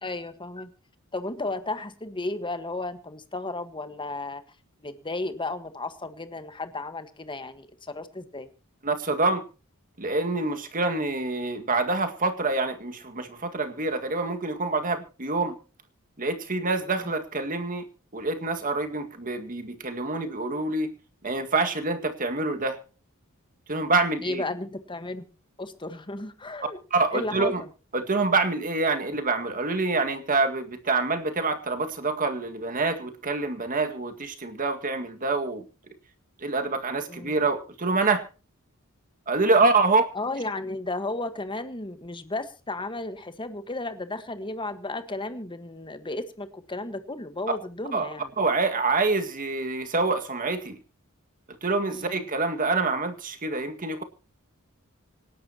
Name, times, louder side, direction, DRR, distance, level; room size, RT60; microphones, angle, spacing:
voice 1, 0.0-0.7 1.1-4.4 4.8-8.5 16.9-17.0 24.2-25.3 25.6-26.8 27.1-27.7 37.1-37.4 40.1-48.3 51.9-52.2, left 2 dB, 20° left, 10 dB, 1.5 m, -34 dB
voice 2, 8.8-9.4 10.0-15.6 16.2-17.8 18.1-20.9 21.2-22.8 23.7-24.4 26.9-27.6 27.9-35.6 36.4-38.2 39.3-40.1 47.9-48.1 48.4-50.8 51.6-54.0, right 3 dB, 40° right, 7 dB, 2.0 m, -26 dB
26.0 x 11.0 x 2.9 m, 0.35 s
head